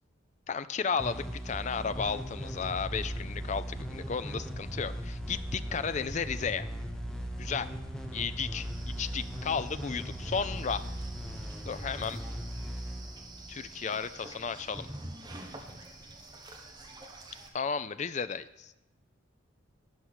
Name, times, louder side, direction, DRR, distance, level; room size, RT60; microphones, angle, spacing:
voice 1, 0.5-6.7 7.4-7.7 8.1-8.7 9.0-10.8 11.7-12.2 13.5-14.9 17.5-18.7, left 6 dB, 35° left, 13 dB, 0.4 m, -33 dB
sound 1, 1.0-14.3, equal, 5° left, 0.8 m, -39 dB
sound 2, 1.9-11.5, right 3 dB, 75° right, 0.9 m, -46 dB
sound 3, 8.6-17.5, right 2 dB, 20° right, 1.2 m, -48 dB
12.0 x 4.7 x 8.2 m, 0.94 s
head